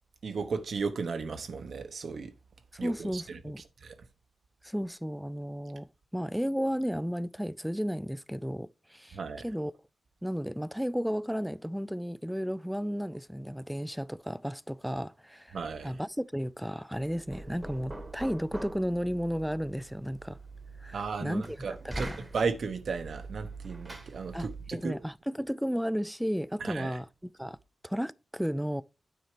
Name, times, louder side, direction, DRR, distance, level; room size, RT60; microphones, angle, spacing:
voice 1, 0.2-2.3 2.8-3.4 3.8-3.9 9.1-9.4 15.5-15.9 20.9-22.1 22.3-25.0 26.6-26.9, right 5 dB, 60° right, 1.0 m, -35 dB
voice 2, 2.7-3.6 4.6-9.7 10.2-15.6 15.8-20.4 20.8-22.2 24.3-27.6 27.8-28.8, equal, ahead, 0.3 m, -33 dB
Knock, 16.9-24.8, right 2 dB, 15° right, 1.2 m, -44 dB
9.4 x 4.3 x 5.0 m
wide cardioid pair, 145°, 0 cm